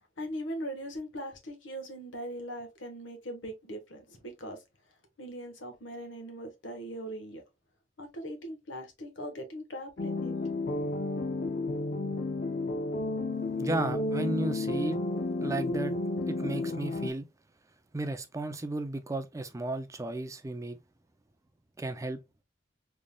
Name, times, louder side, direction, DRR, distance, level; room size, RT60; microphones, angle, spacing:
voice 1, 0.2-4.6 5.2-7.4 8.0-10.4, equal, 70° left, 1.2 m, -40 dB
sound 1, 10.0-17.1, left 2 dB, 45° left, 0.5 m, -32 dB
voice 2, 13.6-15.0 15.4-15.9 16.3-17.3 17.9-20.8 21.8-22.2, right 2 dB, 15° right, 0.4 m, -34 dB
3.7 x 3.5 x 2.2 m
head